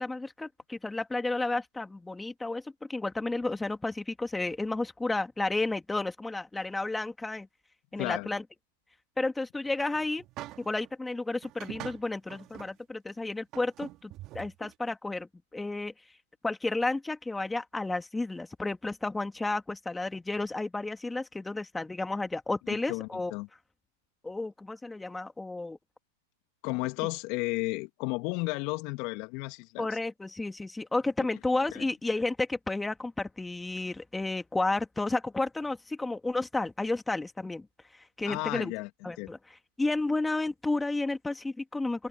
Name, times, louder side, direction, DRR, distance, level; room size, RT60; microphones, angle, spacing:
voice 1, 0.0-7.5 7.9-8.4 9.2-10.3 10.6-15.9 16.4-23.3 24.2-25.8 29.8-37.7 37.9-38.7 39.0-42.1, left 2 dB, 10° left, 2.2 m, -32 dB
voice 2, 7.9-8.3 22.7-23.5 26.6-29.9 31.7-31.9 38.3-38.9 39.2-39.3, left 25 dB, 50° left, 2.6 m, -33 dB
sound 1, 9.8-10.9 11.4-12.7 13.1-13.2 13.5-14.7, right 16 dB, 40° right, 2.9 m, -44 dB
open air
hypercardioid pair, 105°, 0 cm